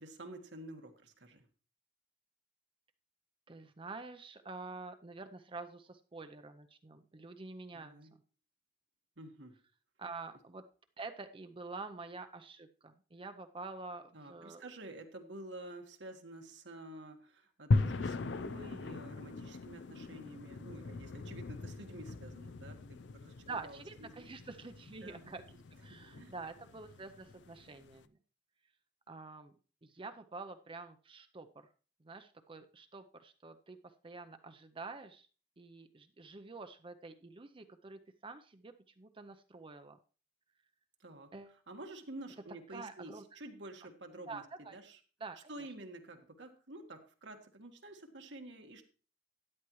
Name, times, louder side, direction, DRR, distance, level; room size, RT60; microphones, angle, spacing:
voice 1, 0.0-1.4 7.7-8.1 9.2-9.5 14.1-24.3 25.0-25.3 25.9-26.3 41.0-41.3 41.7-45.0 45.5-48.8, right 1 dB, 75° right, 4 dB, 1.6 m, -50 dB
voice 2, 3.5-7.9 10.0-10.6 11.0-14.6 23.5-25.4 25.8-28.0 29.1-29.5 29.8-31.5 32.0-33.8 34.0-35.3 35.6-40.0 41.3-41.5 42.7-43.2 44.3-44.8 45.2-45.5, right 3 dB, 30° right, 8 dB, 0.6 m, -47 dB
sound 1, 17.7-28.0, left 3 dB, 75° left, 0.5 m, -39 dB
13.0 x 9.8 x 3.1 m, 0.37 s
head